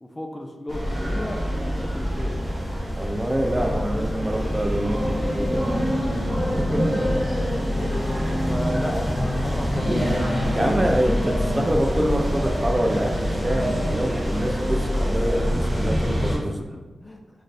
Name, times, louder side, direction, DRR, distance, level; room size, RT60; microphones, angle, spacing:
voice 1, 0.0-1.5 1.9-2.4 3.6-4.9 7.1-7.2 8.5-10.1 16.1-16.4 16.7-17.2, left 1 dB, 25° left, 3 dB, 0.6 m, -34 dB
sound 1, 0.7-16.4, equal, 5° right, 1.5 m, -25 dB
voice 2, 3.0-5.6 6.6-7.1 8.3-8.4 10.5-16.5, equal, 20° right, 2 dB, 0.6 m, -26 dB
3.7 x 3.4 x 4.1 m, 1.3 s
cardioid pair, 50°, 0 cm